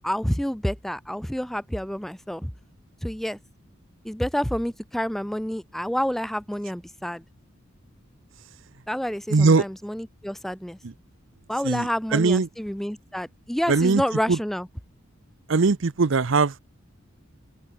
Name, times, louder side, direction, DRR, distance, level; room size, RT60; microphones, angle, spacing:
voice 1, 0.0-2.5 3.0-3.4 4.0-7.2 8.9-10.8 11.5-14.7, equal, ahead, 0.3 m, -28 dB
voice 2, 9.3-9.7 10.8-10.9 11.6-12.5 13.7-14.0 14.3-14.4 15.5-16.6, right 4 dB, 65° right, 0.7 m, -20 dB
open air
head